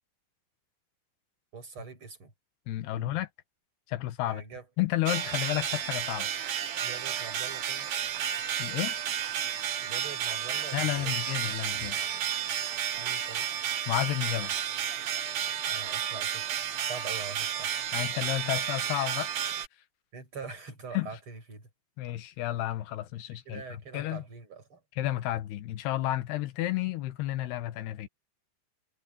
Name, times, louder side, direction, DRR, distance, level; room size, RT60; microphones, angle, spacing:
voice 1, 1.5-2.3 2.9-3.2 4.3-4.7 6.8-7.9 9.8-11.1 12.9-13.5 15.6-16.4 16.8-17.8 20.1-21.7 23.5-24.8, right 5 dB, 30° right, 7.3 m, -43 dB
voice 2, 2.7-3.3 3.9-4.4 4.8-6.3 8.6-9.0 10.7-12.0 13.9-14.5 17.9-19.3 20.9-21.1 22.0-24.2 25.0-28.1, left 14 dB, 85° left, 3.4 m, -31 dB
sound 1, 5.1-19.7, right 9 dB, 60° right, 2.7 m, -32 dB
omnidirectional pair, 4.5 m